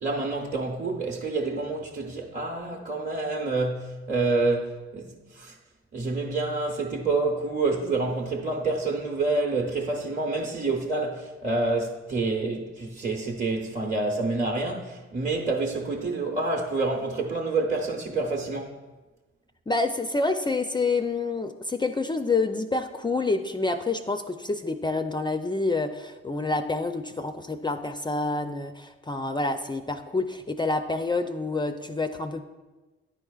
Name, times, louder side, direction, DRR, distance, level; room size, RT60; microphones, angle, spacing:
voice 1, 0.0-5.5 5.9-18.8, right 3 dB, 25° right, 0.9 m, -28 dB
voice 2, 19.7-32.4, left 3 dB, 15° left, 0.4 m, -28 dB
10.5 x 4.4 x 2.4 m
hypercardioid pair, 50°, 30 cm